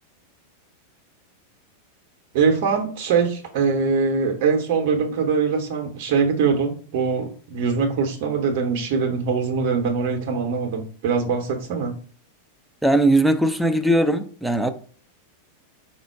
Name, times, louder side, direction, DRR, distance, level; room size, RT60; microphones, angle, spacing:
voice 1, 2.3-11.9, right 5 dB, 45° right, 0.8 m, -22 dB
voice 2, 12.8-14.7, right 1 dB, ahead, 0.5 m, -19 dB
4.4 x 2.1 x 4.5 m
figure-of-eight pair, 90°, 0 cm